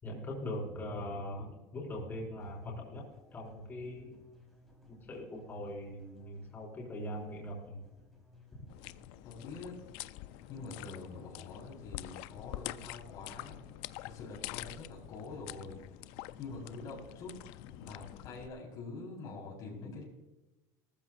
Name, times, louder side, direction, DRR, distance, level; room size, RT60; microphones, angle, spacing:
voice 1, 0.0-3.1 3.3-4.2 5.1-7.8, left 1 dB, 25° left, -1 dB, 5.2 m, -41 dB
sound 1, 2.4-18.4, left 2 dB, ahead, 4.1 m, -61 dB
sound 2, 8.7-18.5, left 17 dB, 70° left, 0.5 m, -46 dB
voice 2, 9.2-9.7 10.5-13.6 14.0-17.3 17.6-20.0, left 4 dB, 50° left, -3 dB, 4.3 m, -45 dB
19.5 x 14.0 x 2.5 m, 1.1 s
cardioid pair, 150°, 9 cm